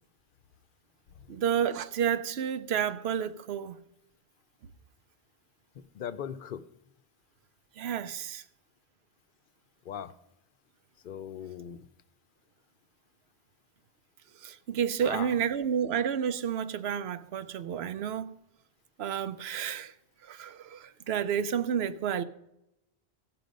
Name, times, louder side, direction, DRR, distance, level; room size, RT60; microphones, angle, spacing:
voice 1, 1.3-3.8 7.8-8.4 14.4-18.3 19.0-19.9 20.2-22.2, right 8 dB, 80° right, 0.9 m, -30 dB
voice 2, 5.9-6.6 9.9-10.1 11.0-11.9 15.0-15.3, left 9 dB, 60° left, 0.7 m, -38 dB
16.5 x 6.0 x 5.1 m
omnidirectional pair, 1.1 m